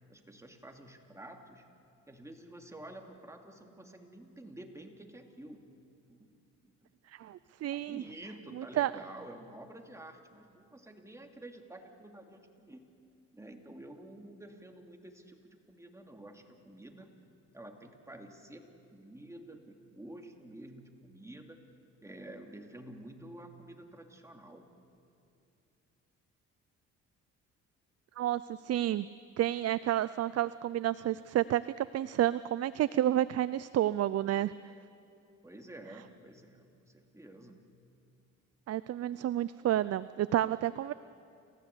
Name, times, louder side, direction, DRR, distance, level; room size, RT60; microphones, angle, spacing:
voice 1, 0.1-1.6 2.1-5.7 6.1-6.2 6.6-6.7 7.7-12.8 13.3-17.1 17.5-21.6 22.0-24.7 35.4-37.6, right 1 dB, 10° right, 3 dB, 2.6 m, -50 dB
voice 2, 7.1-8.0 8.6-8.9 28.2-29.1 29.4-34.5 38.7-40.9, right 12 dB, 55° right, 16 dB, 0.5 m, -30 dB
29.5 x 15.0 x 8.3 m, 2.6 s
cardioid pair, 90°, 30 cm